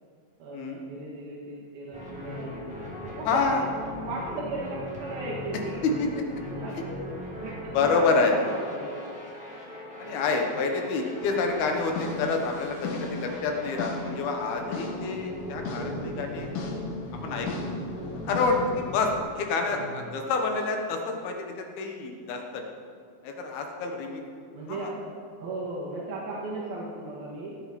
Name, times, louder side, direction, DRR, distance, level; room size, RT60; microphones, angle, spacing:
voice 1, 0.4-2.7 3.0-3.6 4.0-5.9 6.5-7.0 7.4-9.0 10.0-10.2 15.7-16.5 19.7-20.0 24.5-25.1 25.4-27.6, right 2 dB, 80° right, -5 dB, 3.6 m, -36 dB
sound 1, 1.9-19.2, equal, ahead, 3.1 m, -39 dB
voice 2, 3.2-3.6 6.0-6.1 7.7-8.3 10.0-16.5 17.2-17.5 18.3-19.1 19.4-22.6 23.2-24.2 24.7-24.9, left 4 dB, 90° left, 3 dB, 3.3 m, -28 dB
sound 2, 11.2-19.1, left 2 dB, 65° left, 2.7 m, -37 dB
18.0 x 8.2 x 5.2 m, 2.2 s
omnidirectional pair, 4.3 m